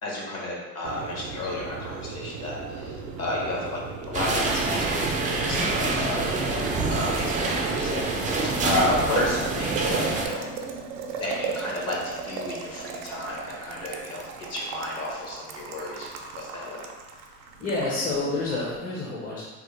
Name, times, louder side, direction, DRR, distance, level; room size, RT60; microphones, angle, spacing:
voice 1, 0.0-3.8 4.1-10.5 11.2-14.2 14.5-16.1 16.3-16.8, left 1 dB, 45° left, -4 dB, 1.2 m, -32 dB
Boiling, 0.8-18.8, right 5 dB, 90° right, 0.5 m, -37 dB
sound 1, 4.1-10.3, right 3 dB, 20° right, 0.4 m, -26 dB
voice 2, 17.6-19.5, left 2 dB, 25° left, -6 dB, 0.7 m, -29 dB
3.5 x 2.1 x 3.2 m, 1.3 s
supercardioid pair, 100°, 36 cm